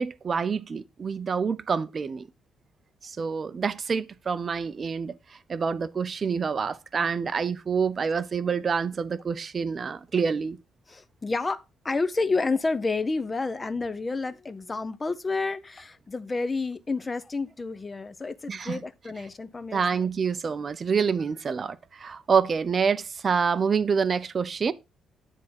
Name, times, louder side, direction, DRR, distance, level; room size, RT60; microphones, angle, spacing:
voice 1, 0.0-2.3 3.0-10.6 18.5-18.8 19.7-24.7, right 6 dB, 35° right, 0.5 m, -27 dB
voice 2, 10.9-20.1, left 3 dB, 20° left, 0.7 m, -30 dB
10.0 x 3.6 x 5.8 m
cardioid pair, 140°, 0 cm